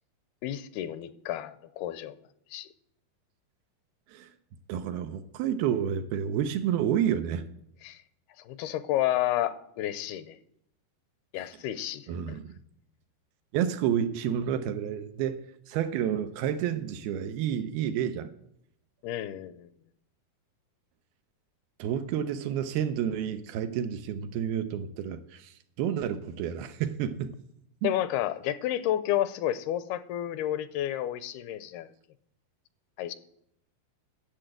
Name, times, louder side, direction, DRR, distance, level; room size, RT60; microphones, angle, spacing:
voice 1, 0.4-2.2 2.5-2.7 7.8-8.0 8.4-10.4 11.3-12.4 19.0-19.7 27.8-31.9 33.0-33.1, left 12 dB, 80° left, 13 dB, 2.5 m, -31 dB
voice 2, 4.7-7.4 12.1-12.5 13.5-15.4 15.7-18.3 21.8-27.4 27.8-27.9, right 9 dB, 80° right, 9 dB, 2.4 m, -30 dB
10.5 x 7.6 x 7.7 m, 0.73 s
omnidirectional pair, 4.6 m